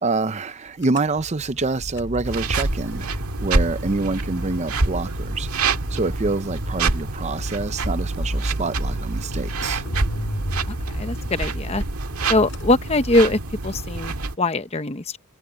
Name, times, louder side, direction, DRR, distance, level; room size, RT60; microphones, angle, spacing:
voice 1, 0.0-5.5 5.9-9.8, right 3 dB, 30° right, 0.6 m, -26 dB
sound 1, 0.8-13.6, equal, 55° left, 6.3 m, -36 dB
sound 2, 2.2-14.4, right 3 dB, 85° right, 1.8 m, -26 dB
voice 2, 10.7-11.8 12.3-15.2, left 2 dB, 30° left, 0.9 m, -22 dB
head